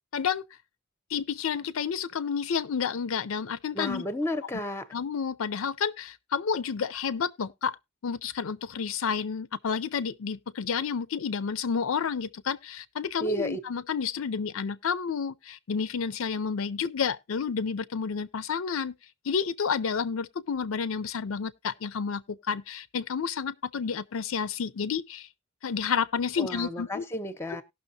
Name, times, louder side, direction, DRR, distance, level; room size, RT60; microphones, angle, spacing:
voice 1, 0.1-0.4 1.1-4.0 4.9-7.8 8.0-18.9 19.2-25.3 25.6-27.0, left 6 dB, 75° left, 0.5 m, -30 dB
voice 2, 3.7-4.9 13.2-13.6 26.4-27.6, equal, 10° left, 0.6 m, -32 dB
18.0 x 6.0 x 2.7 m
head